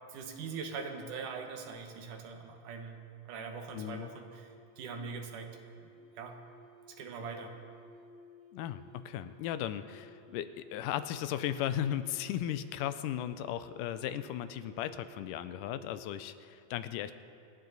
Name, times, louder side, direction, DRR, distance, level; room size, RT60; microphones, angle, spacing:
voice 1, 0.1-6.4 6.9-7.6, right 5 dB, 75° right, 4 dB, 2.7 m, -42 dB
sound 1, 3.5-16.2, right 1 dB, 65° left, 3.2 m, -57 dB
voice 2, 3.7-4.1 8.5-17.1, left 11 dB, 90° left, 12 dB, 2.2 m, -36 dB
26.5 x 9.6 x 4.0 m, 2.6 s
omnidirectional pair, 3.7 m